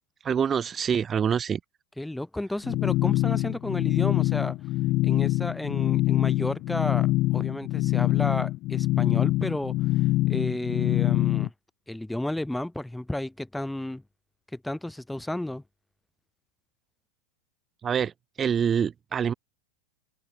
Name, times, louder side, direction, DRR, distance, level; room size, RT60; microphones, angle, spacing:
voice 1, 0.2-1.6 17.8-18.1 18.4-19.3, right 7 dB, 20° right, 3.0 m, -25 dB
voice 2, 2.0-4.6 5.0-9.8 10.3-11.5 11.9-14.0 14.5-15.6, left 1 dB, 5° left, 5.9 m, -32 dB
sound 1, 2.6-11.5, left 18 dB, 40° left, 1.4 m, -24 dB
figure-of-eight pair, 90°, 0 cm